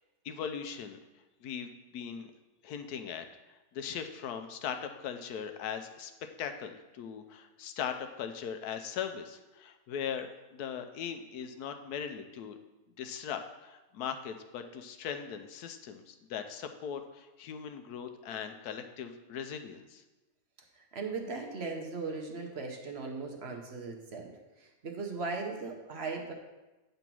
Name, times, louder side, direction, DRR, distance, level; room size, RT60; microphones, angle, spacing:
voice 1, 0.2-1.0 1.4-2.3 2.6-3.2 3.7-6.1 6.4-12.6 13.0-20.0, left 7 dB, 85° left, 7 dB, 1.2 m, -39 dB
voice 2, 20.9-26.3, right 4 dB, 50° right, 1 dB, 1.1 m, -38 dB
8.5 x 3.9 x 6.0 m, 1.1 s
omnidirectional pair, 1.6 m